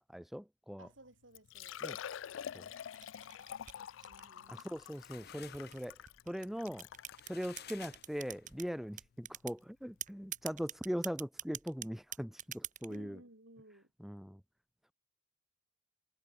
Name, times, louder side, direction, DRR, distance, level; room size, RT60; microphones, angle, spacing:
voice 1, 0.0-0.9 1.8-2.0 2.5-2.7 4.5-6.0 6.3-6.9 7.3-13.2 14.0-14.4, equal, ahead, 0.5 m, -40 dB
voice 2, 0.8-1.8 4.0-4.7 12.9-13.9, right 1 dB, 75° right, 6.2 m, -58 dB
Liquid, 0.9-1.0 1.3-7.2 7.9-8.0 8.5-8.6 10.2-10.3 10.5-10.6, left 9 dB, 75° left, 0.4 m, -47 dB
sound 1, 2.4-4.9 5.5-8.7 9.0-9.6 10.0-13.0, right 11 dB, 40° right, 1.5 m, -45 dB
sound 2, 4.5-8.7, left 9 dB, 55° left, 1.5 m, -55 dB
head